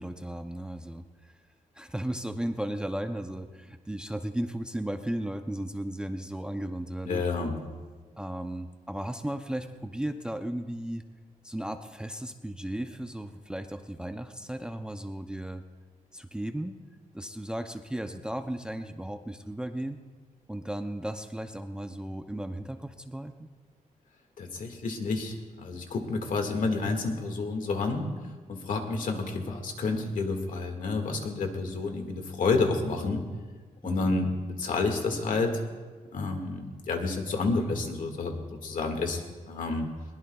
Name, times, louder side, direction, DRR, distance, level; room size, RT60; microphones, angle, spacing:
voice 1, 0.0-1.4 1.7-7.2 8.2-11.0 11.4-15.6 16.1-16.7 17.1-20.0 20.5-23.5 33.8-34.2, right 1 dB, 5° right, 7 dB, 0.5 m, -35 dB
voice 2, 7.0-7.6 24.4-28.1 28.5-33.2 33.8-34.3 34.6-35.6 36.1-38.3 38.6-39.9, left 3 dB, 70° left, 4 dB, 1.8 m, -29 dB
21.5 x 20.0 x 2.3 m, 1.4 s
wide cardioid pair, 165°, 14 cm